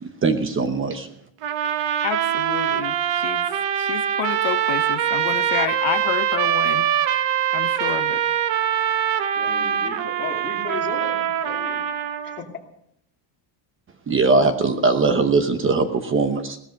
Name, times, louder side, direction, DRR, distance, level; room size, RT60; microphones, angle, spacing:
voice 1, 0.0-1.1 14.1-16.6, right 4 dB, 25° right, 8 dB, 0.9 m, -20 dB
sound 1, 1.4-12.4, right 10 dB, 75° right, 1.2 m, -23 dB
voice 2, 2.0-3.5 3.8-6.9 7.5-8.2, left 14 dB, 80° left, 11 dB, 1.0 m, -29 dB
voice 3, 9.3-12.4, left 6 dB, 25° left, -1 dB, 2.8 m, -36 dB
18.0 x 13.5 x 5.3 m, 0.72 s
cardioid pair, 175°, 45 cm